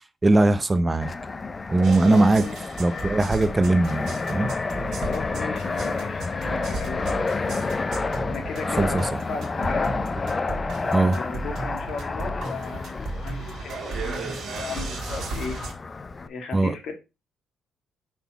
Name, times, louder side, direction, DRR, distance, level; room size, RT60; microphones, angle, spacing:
voice 1, 0.2-1.1 1.7-2.4 2.8-4.5 8.7-9.0 10.9-11.2 16.5-16.7, right 2 dB, 20° right, 0.6 m, -20 dB
Fixed-wing aircraft airplane, 1.0-16.3, left 3 dB, 30° left, 0.5 m, -30 dB
sound 1, 1.8-15.7, right 3 dB, 70° right, 1.7 m, -35 dB
voice 2, 2.0-2.5 5.0-7.7 8.3-9.9 11.1-15.6 16.2-16.9, left 4 dB, 65° left, 1.8 m, -36 dB
5.6 x 4.0 x 4.6 m
cardioid pair, 90°, 0 cm